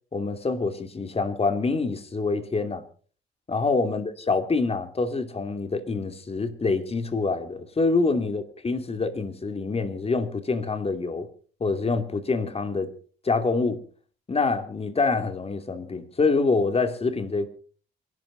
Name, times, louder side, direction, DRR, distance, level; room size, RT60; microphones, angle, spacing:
voice 1, 0.1-2.8 3.5-11.3 11.6-12.9 13.2-13.8 14.3-17.5, left 3 dB, 30° left, 2.9 m, -26 dB
27.0 x 12.0 x 4.1 m
cardioid pair, 90°, 20 cm